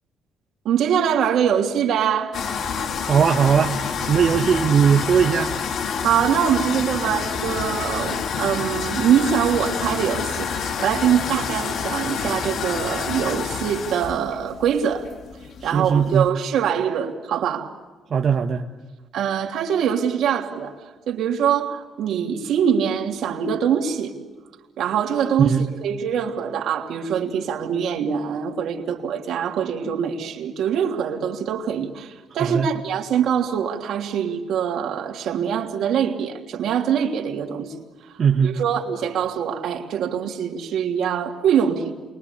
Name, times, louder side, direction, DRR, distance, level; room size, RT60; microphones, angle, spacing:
voice 1, 0.6-2.3 6.0-15.1 15.6-17.7 19.1-20.7 21.1-24.1 24.8-37.7 38.4-41.8, right 8 dB, 75° right, 3.1 m, -23 dB
sound 1, 2.3-16.3, left 6 dB, 65° left, 1.7 m, -28 dB
voice 2, 3.0-3.7 4.1-5.5 15.6-16.3 18.1-18.6 25.4-25.7 32.4-32.7 38.2-38.5, right 7 dB, 50° right, 1.3 m, -19 dB
28.5 x 22.5 x 8.5 m
cardioid pair, 90°, 0 cm